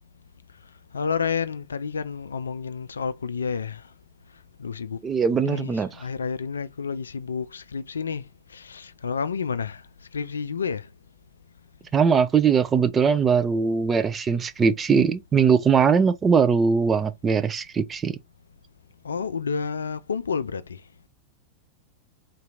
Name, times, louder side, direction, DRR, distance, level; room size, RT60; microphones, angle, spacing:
voice 1, 0.9-3.8 4.6-5.0 5.4-8.2 8.5-9.8 10.1-10.9 19.0-20.8, left 6 dB, 70° left, 0.3 m, -30 dB
voice 2, 5.0-5.9 11.9-18.2, right 6 dB, 20° right, 0.5 m, -21 dB
3.8 x 2.8 x 3.6 m
figure-of-eight pair, 90°, 0 cm